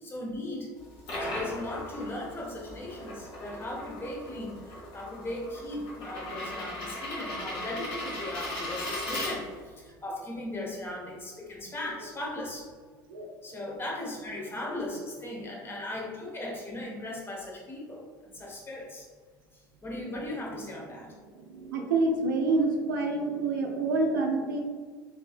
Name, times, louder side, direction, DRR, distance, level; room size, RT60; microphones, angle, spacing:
voice 1, 0.0-0.7 1.2-12.7 13.4-19.1 19.8-21.1, left 1 dB, 20° left, -3 dB, 0.9 m, -38 dB
sound 1, 0.8-9.8, left 1 dB, 50° left, 1.0 m, -38 dB
voice 2, 21.3-24.6, right 3 dB, 65° right, 1 dB, 0.4 m, -27 dB
3.1 x 2.7 x 2.3 m, 1.5 s
figure-of-eight pair, 70°, 12 cm